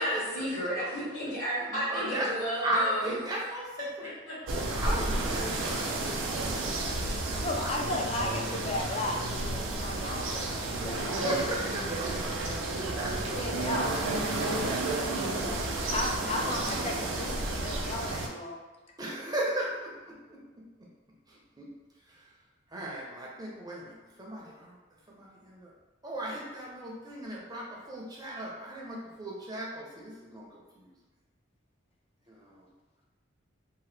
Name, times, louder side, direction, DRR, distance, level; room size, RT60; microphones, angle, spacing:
voice 1, 0.0-3.1, right 1 dB, 65° left, -12 dB, 1.1 m, -32 dB
voice 2, 1.7-2.3 2.6-4.1 4.7-6.0 6.8-7.9 10.9-12.3 13.0-13.4 14.6-15.3 19.0-20.4 21.3-21.7 22.7-24.8 25.1-25.7 26.0-30.5 30.7-30.9 32.3-32.7, right 1 dB, 20° right, -4 dB, 0.6 m, -36 dB
sound 1, 4.5-18.3, right 2 dB, 80° right, 0.5 m, -31 dB
voice 3, 7.4-11.3 13.1-14.0 15.2-15.4 15.9-18.6, left 2 dB, 30° left, 0 dB, 0.4 m, -35 dB
2.8 x 2.2 x 3.2 m, 1.2 s
head